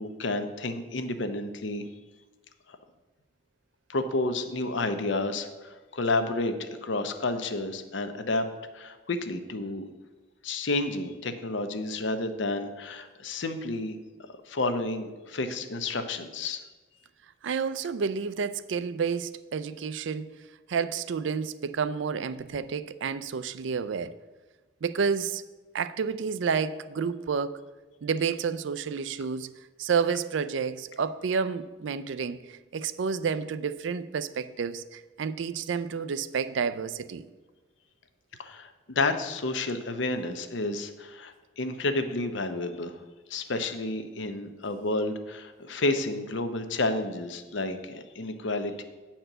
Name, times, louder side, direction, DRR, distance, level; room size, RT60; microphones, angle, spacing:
voice 1, 0.0-1.9 3.9-8.4 8.7-9.9 10.4-14.0 14.5-16.6 38.4-43.0 43.3-48.8, left 2 dB, 70° left, 9 dB, 0.7 m, -30 dB
voice 2, 17.4-20.3 20.7-24.1 24.8-25.4 25.7-27.6 28.0-29.5 29.8-37.3, right 6 dB, 75° right, 13 dB, 0.4 m, -30 dB
8.9 x 4.4 x 6.6 m, 1.2 s
head